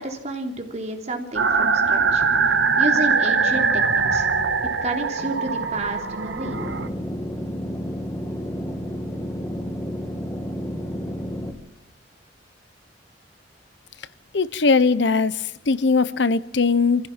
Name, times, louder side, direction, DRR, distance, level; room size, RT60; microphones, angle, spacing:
voice 1, 0.0-2.2 2.8-4.3 4.8-6.6, right 1 dB, 35° right, 3.2 m, -30 dB
sound 1, 1.3-6.9, right 5 dB, 70° right, 1.5 m, -21 dB
sound 2, 6.4-11.5, equal, 15° left, 1.9 m, -31 dB
voice 2, 14.3-17.1, left 4 dB, 70° left, 0.8 m, -20 dB
25.0 x 15.5 x 7.3 m
head